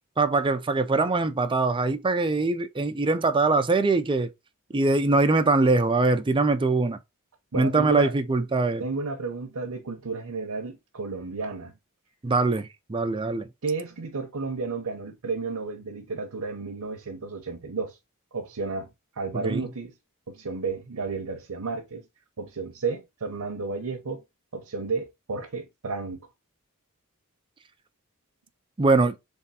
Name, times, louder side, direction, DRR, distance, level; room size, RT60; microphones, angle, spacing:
voice 1, 0.2-4.3 4.7-7.0 7.5-8.8 12.2-13.5 19.3-19.7 28.8-29.2, right 3 dB, 25° right, 0.5 m, -23 dB
voice 2, 7.5-8.1 8.8-11.7 13.6-18.0 18.3-18.9 19.2-19.9 20.3-22.0 22.4-24.2 24.5-26.2, right 4 dB, 75° right, 0.8 m, -32 dB
3.6 x 3.3 x 4.1 m
head